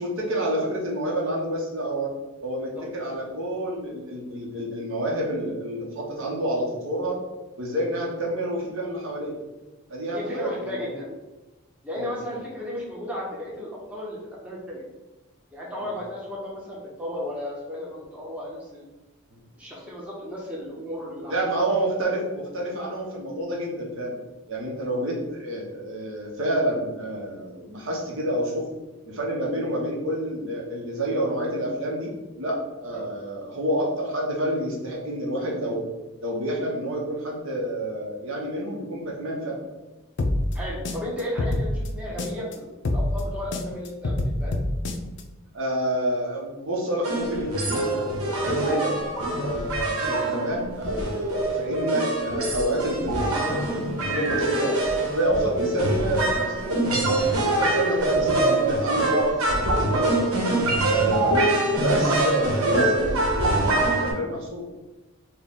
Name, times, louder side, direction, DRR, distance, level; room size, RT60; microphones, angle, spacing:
voice 1, 0.0-7.2 7.6-9.3 9.9-10.9 12.0-12.1 15.8-15.9 19.3-19.4 21.3-24.1 24.5-28.7 29.1-32.1 32.4-35.8 36.2-39.6 45.5-48.9 49.4-54.8 55.1-60.4 60.9-64.6, right 1 dB, 65° right, -3 dB, 0.9 m, -28 dB
voice 2, 10.1-11.1 11.8-14.8 15.5-18.9 19.6-21.4 32.9-33.1 40.5-44.5 61.3-61.5, left 1 dB, 5° right, -6 dB, 0.8 m, -34 dB
sound 1, 40.2-42.5 42.8-45.2, left 1 dB, 55° left, 0.4 m, -26 dB
sound 2, 47.0-64.1, right 2 dB, 85° right, 1.0 m, -24 dB
4.4 x 2.2 x 3.6 m, 1.1 s
head